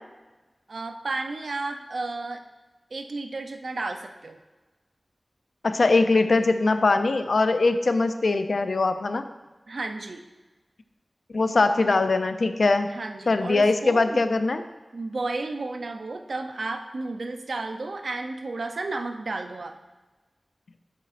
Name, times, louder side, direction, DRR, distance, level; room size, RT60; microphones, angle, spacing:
voice 1, 0.7-2.4 2.9-4.4 9.3-9.4 9.7-10.2 12.9-14.2 14.9-19.8, right 3 dB, 75° right, 6 dB, 0.6 m, -32 dB
voice 2, 5.6-9.2 11.3-12.9 13.3-14.6, left 3 dB, 75° left, 9 dB, 0.5 m, -21 dB
7.9 x 7.4 x 2.5 m, 1.2 s
cardioid pair, 45°, 0 cm